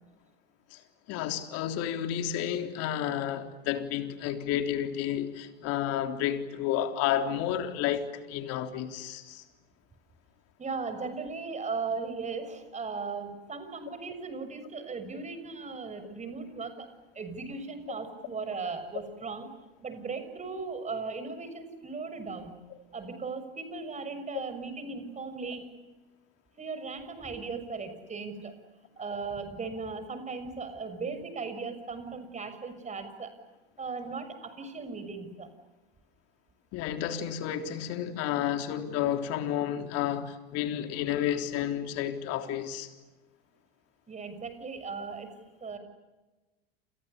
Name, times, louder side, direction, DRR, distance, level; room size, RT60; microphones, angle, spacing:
voice 1, 1.1-9.4 36.7-42.9, left 10 dB, 55° left, 3.7 m, -31 dB
voice 2, 10.6-16.9 17.1-19.5 19.8-22.6 22.9-25.7 26.6-28.5 29.0-33.3 33.8-35.5 44.1-45.3 45.6-45.8, right 4 dB, 25° right, 6.5 m, -37 dB
29.5 x 29.0 x 6.9 m
hypercardioid pair, 85°, 30 cm